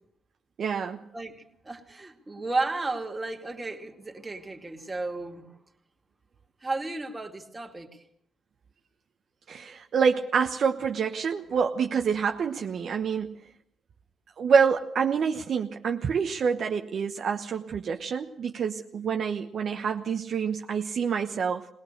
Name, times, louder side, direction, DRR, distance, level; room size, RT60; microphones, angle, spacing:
voice 1, 0.6-1.0 9.5-13.4 14.4-21.7, right 6 dB, 55° right, 1.1 m, -27 dB
voice 2, 1.1-5.5 6.6-8.0, right 3 dB, 20° right, 2.7 m, -33 dB
20.5 x 19.0 x 6.7 m
cardioid pair, 90°, 0 cm